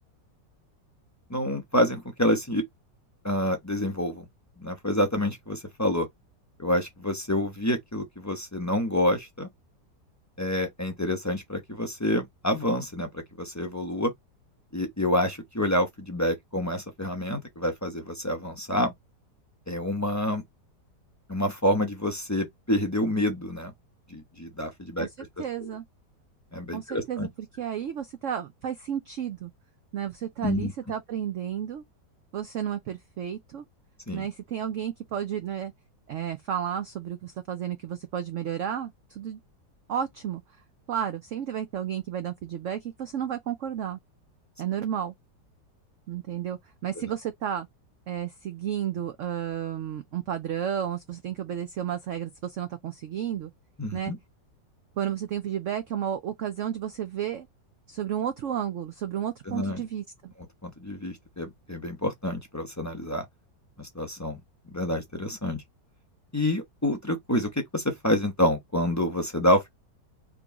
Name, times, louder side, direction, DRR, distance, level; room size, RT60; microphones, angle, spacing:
voice 1, 1.3-2.6 3.2-4.2 4.6-6.1 6.6-9.5 10.4-14.1 14.7-18.9 19.7-20.4 21.3-23.7 24.1-25.1 25.6-25.7 26.5-27.3 30.4-30.7 34.1-34.3 53.8-54.2 59.5-59.8 60.6-63.3 63.8-64.4 64.7-65.6 66.3-69.7, left 1 dB, 25° left, 0.4 m, -27 dB
voice 2, 25.4-25.8 26.7-27.3 27.6-29.5 29.9-31.8 32.3-33.6 34.1-35.7 36.1-39.4 39.9-40.4 40.9-44.0 44.6-45.1 46.1-47.7 48.1-53.5 53.9-54.1 55.0-57.5 57.9-60.3, right 9 dB, 85° right, 0.6 m, -32 dB
3.8 x 2.9 x 3.6 m
omnidirectional pair, 1.9 m